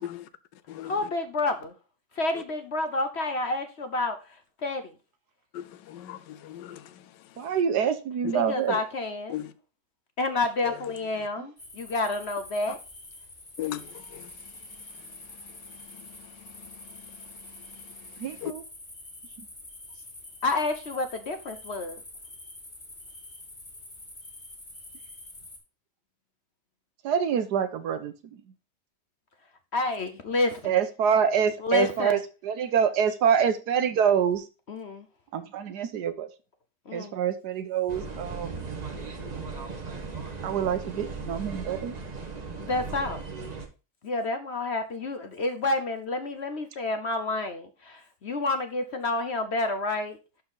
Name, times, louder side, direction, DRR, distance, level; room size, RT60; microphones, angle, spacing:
voice 1, 0.8-1.7 2.2-4.2 4.6-4.8 8.3-9.4 10.2-12.8 20.4-22.0 29.7-30.8 31.6-32.2 34.7-35.0 36.9-37.1 42.6-43.2 44.0-50.2, left 2 dB, 50° left, 0.9 m, -29 dB
voice 2, 5.5-6.8 8.2-8.3 9.3-9.5 10.6-10.7 13.6-14.3 18.4-18.5, left 13 dB, 80° left, 1.3 m, -36 dB
voice 3, 7.4-8.8 11.4-11.5 18.2-18.6 27.0-28.4 30.6-34.4 35.3-36.3 36.9-38.6 40.4-41.9, right 7 dB, 70° right, 1.3 m, -26 dB
sound 1, 11.6-25.6, left 2 dB, 25° left, 2.3 m, -46 dB
sound 2, 37.9-43.7, right 4 dB, 30° right, 1.0 m, -37 dB
11.5 x 4.5 x 3.8 m
omnidirectional pair, 1.9 m